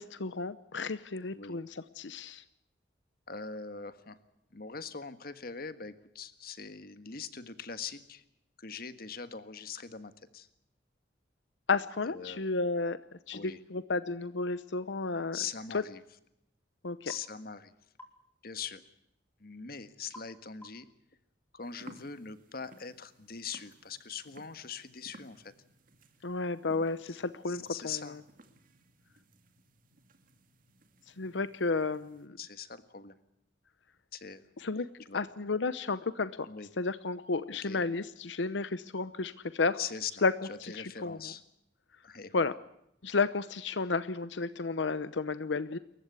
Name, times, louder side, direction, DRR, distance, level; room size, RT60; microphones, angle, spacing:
voice 1, 0.0-2.4 11.7-15.4 15.7-15.8 16.8-17.1 26.2-28.2 31.1-32.4 34.6-34.9 35.1-36.5 36.8-39.8 40.2-40.3 40.6-41.3 42.3-42.5 43.0-45.8, left 3 dB, 90° left, 14 dB, 0.8 m, -32 dB
voice 2, 3.3-4.2 4.5-8.2 8.6-10.5 12.1-12.5 13.3-13.6 15.3-16.0 17.0-17.7 18.4-18.8 19.4-20.9 21.5-25.5 27.1-27.2 27.5-28.2 32.4-33.1 34.1-34.5 35.1-35.2 36.5-36.7 37.6-37.8 39.8-40.1 40.5-41.4 42.0-42.5, left 6 dB, 55° left, 11 dB, 1.6 m, -42 dB
sound 1, 17.1-17.3 18.0-18.2 20.1-20.4 20.6-20.9, equal, 10° left, 4.4 m, -51 dB
sound 2, 21.6-32.3, right 1 dB, 50° right, 2.5 m, -58 dB
28.0 x 15.0 x 8.2 m, 0.80 s
head